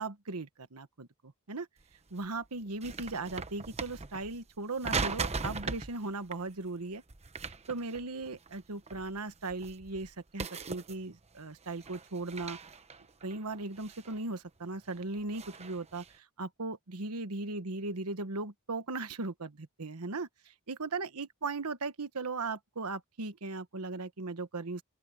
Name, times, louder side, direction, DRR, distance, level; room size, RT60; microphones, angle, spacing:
voice 1, 0.0-1.7 2.1-7.0 7.7-12.6 13.2-20.3 20.7-24.8, right 3 dB, 85° right, 1.3 m, -38 dB
sound 1, 1.8-1.9 2.2-4.4 4.8-6.0 6.2-6.4 7.1-8.6 8.9-10.1 10.4-11.3 11.6-14.2 14.7-16.1, right 4 dB, 30° right, 1.0 m, -39 dB
open air
head